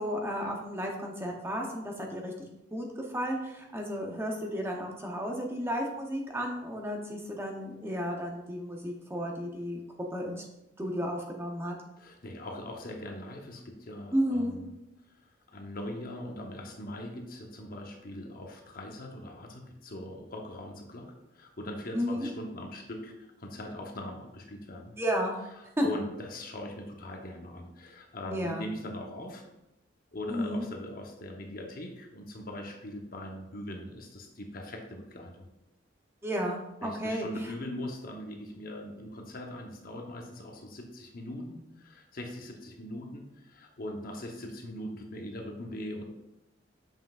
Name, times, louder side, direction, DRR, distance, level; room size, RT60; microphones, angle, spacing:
voice 1, 0.0-2.3 2.7-9.8 10.1-10.4 10.8-11.7 14.1-14.6 21.9-22.3 25.0-25.5 25.8-25.9 28.3-28.7 30.3-30.7 36.2-37.3, equal, 15° right, 1 dB, 0.7 m, -33 dB
voice 2, 12.0-14.6 15.5-21.1 21.3-24.9 25.5-29.4 30.1-35.5 36.8-46.0, left 1 dB, 50° left, 2 dB, 0.9 m, -41 dB
7.2 x 5.7 x 2.4 m, 0.90 s
head